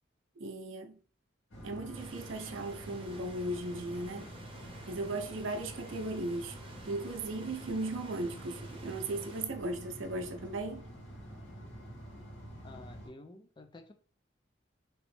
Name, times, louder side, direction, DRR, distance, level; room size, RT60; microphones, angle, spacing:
voice 1, 0.4-1.0 1.6-4.3 4.9-6.6 6.8-10.9, right 2 dB, 80° right, 0.6 m, -37 dB
Tractor in Field, 1.5-13.1, equal, 80° left, 1.8 m, -47 dB
sound 1, 1.9-9.4, right 2 dB, 30° right, 0.7 m, -52 dB
voice 2, 12.6-13.9, left 2 dB, 25° left, 0.4 m, -51 dB
3.0 x 3.0 x 3.1 m
head